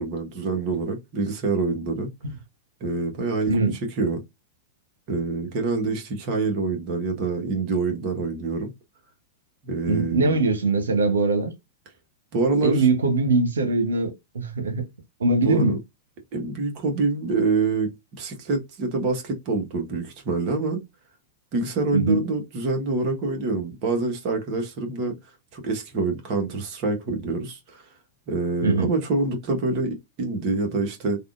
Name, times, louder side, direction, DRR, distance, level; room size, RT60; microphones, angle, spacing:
voice 1, 0.0-2.1 2.8-4.2 5.1-8.7 9.6-10.4 12.3-12.9 15.4-15.8 16.3-17.9 18.2-20.8 21.5-25.1 25.5-27.8 28.3-31.2, right 3 dB, 45° right, 1.3 m, -26 dB
voice 2, 9.9-11.5 12.6-14.9 15.2-15.8 21.9-22.2 28.6-28.9, right 3 dB, 80° right, 1.0 m, -22 dB
3.4 x 2.4 x 2.5 m
hypercardioid pair, 105°, 0 cm